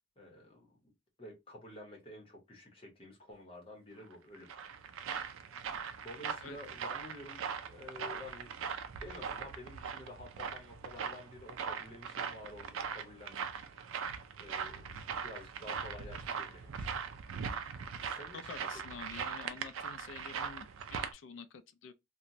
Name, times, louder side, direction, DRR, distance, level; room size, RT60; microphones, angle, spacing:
voice 1, 0.2-0.9 1.2-5.0 6.0-8.6 9.0-16.9 18.0-18.7, left 1 dB, 25° left, 0.9 m, -51 dB
sound 1, 4.1-21.1, right 6 dB, 75° right, 0.4 m, -40 dB
voice 2, 18.3-21.9, left 5 dB, 60° left, 0.4 m, -48 dB
2.9 x 2.2 x 2.5 m
head